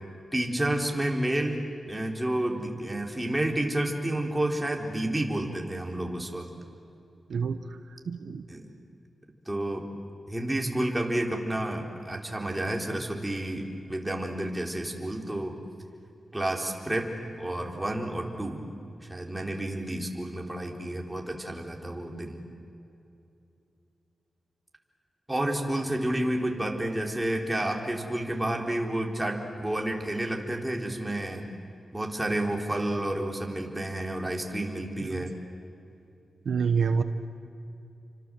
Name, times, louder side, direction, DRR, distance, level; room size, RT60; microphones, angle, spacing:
voice 1, 0.3-1.6 1.9-6.5 8.5-8.7 9.5-9.9 10.3-15.6 16.3-18.6 19.0-22.4 25.3-31.5 31.9-35.3, right 1 dB, 10° right, 1 dB, 4.0 m, -30 dB
voice 2, 7.3-7.8 8.1-8.4 35.0-35.3 36.4-37.0, right 6 dB, 80° right, 9 dB, 1.2 m, -28 dB
30.0 x 25.5 x 7.8 m, 2.7 s
cardioid pair, 85°, 0 cm